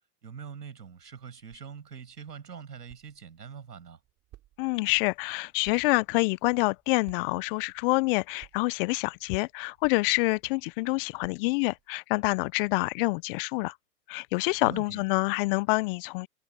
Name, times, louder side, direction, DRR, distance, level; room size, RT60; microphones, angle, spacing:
voice 1, 0.2-4.0 14.6-15.0, right 7 dB, 90° right, 6.6 m, -43 dB
sound 1, 1.0-11.9, right 14 dB, 35° right, 6.4 m, -60 dB
voice 2, 4.6-13.7 14.1-16.3, left 26 dB, 40° left, 0.5 m, -27 dB
hypercardioid pair, 110°, 47 cm